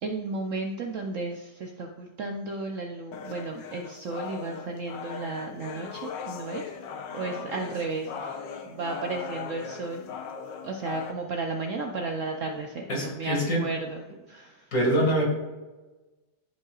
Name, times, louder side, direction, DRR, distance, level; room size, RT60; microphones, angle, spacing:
voice 1, 0.0-6.6 7.1-10.2 10.6-14.0 14.3-14.7, right 3 dB, 65° right, 2 dB, 0.8 m, -34 dB
sound 1, 3.1-11.1, left 6 dB, 80° left, 1.4 m, -39 dB
voice 2, 12.9-13.6 14.7-15.3, right 1 dB, 55° left, -2 dB, 2.5 m, -24 dB
13.5 x 5.5 x 2.4 m, 1.2 s
omnidirectional pair, 1.9 m